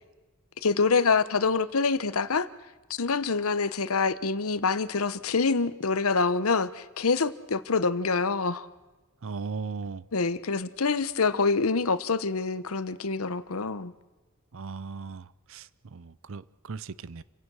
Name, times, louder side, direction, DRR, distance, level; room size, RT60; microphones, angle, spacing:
voice 1, 0.6-2.5 3.0-8.7 10.1-13.9, left 4 dB, 75° left, 0.9 m, -26 dB
voice 2, 9.2-10.0 14.5-17.2, right 4 dB, 65° right, 0.6 m, -38 dB
29.5 x 16.5 x 6.3 m
head